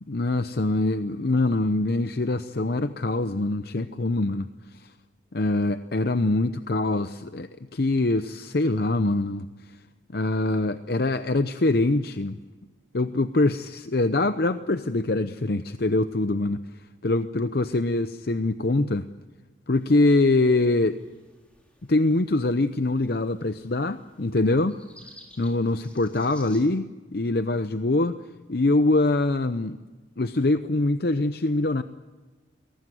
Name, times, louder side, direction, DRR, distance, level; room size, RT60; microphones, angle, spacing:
voice 1, 0.1-4.9 5.3-9.8 10.1-12.4 12.9-16.7 17.0-19.1 19.7-21.0 21.9-24.8 25.4-28.2 28.5-29.8 30.2-31.8, left 2 dB, 55° left, 11 dB, 0.7 m, -24 dB
sound 1, 19.7-26.6, left 1 dB, 5° left, 4.1 m, -55 dB
22.5 x 18.5 x 9.3 m, 1.3 s
head